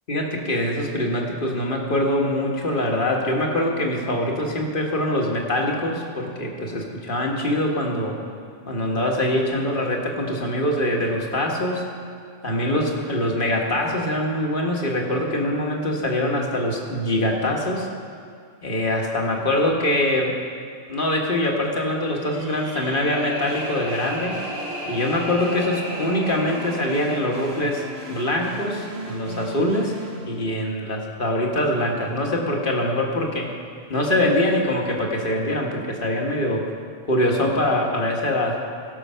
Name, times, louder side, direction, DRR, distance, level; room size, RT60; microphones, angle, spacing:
voice 1, 0.1-8.2 8.7-11.8 12.4-17.9 18.6-20.4 20.9-24.4 24.9-30.0 30.3-33.5 33.9-36.7 37.1-38.6, left 1 dB, 50° left, 0 dB, 1.7 m, -23 dB
sound 1, 22.1-29.1, right 1 dB, 55° right, 2.5 m, -35 dB
sound 2, 23.4-30.3, right 1 dB, 75° right, 1.7 m, -37 dB
17.0 x 6.9 x 5.6 m, 2.3 s
omnidirectional pair, 1.1 m